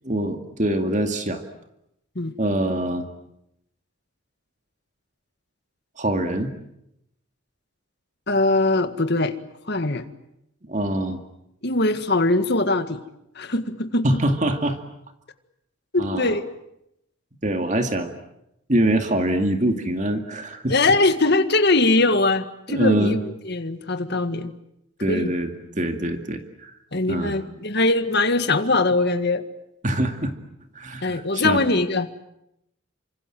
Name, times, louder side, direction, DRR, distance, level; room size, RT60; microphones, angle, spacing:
voice 1, 0.0-1.4 2.4-3.1 6.0-6.5 10.7-11.2 14.0-14.8 16.0-16.4 17.4-18.1 18.7-20.7 22.7-23.2 25.0-26.8 27.1-27.3 29.8-30.3 30.7-31.6, right 1 dB, 35° right, 6 dB, 2.3 m, -24 dB
voice 2, 8.3-9.4 9.7-10.1 11.6-13.0 13.4-14.2 15.9-16.4 20.7-24.5 25.1-25.3 26.9-29.4 31.0-32.1, left 2 dB, 50° left, 9 dB, 1.8 m, -21 dB
28.5 x 26.0 x 7.7 m, 0.81 s
head